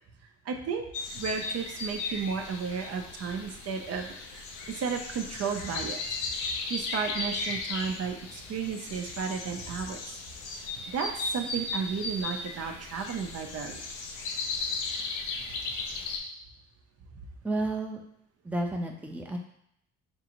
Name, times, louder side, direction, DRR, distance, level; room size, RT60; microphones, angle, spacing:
voice 1, 0.4-0.9 1.1-6.0 6.7-10.2 10.9-13.8, right 6 dB, 55° right, 3 dB, 0.6 m, -33 dB
sound 1, 0.9-16.2, left 3 dB, 85° left, 0.6 m, -36 dB
voice 2, 17.4-18.0 18.4-19.4, right 2 dB, 5° right, 1 dB, 0.6 m, -31 dB
5.2 x 2.5 x 2.9 m, 0.72 s
cardioid pair, 90°, 30 cm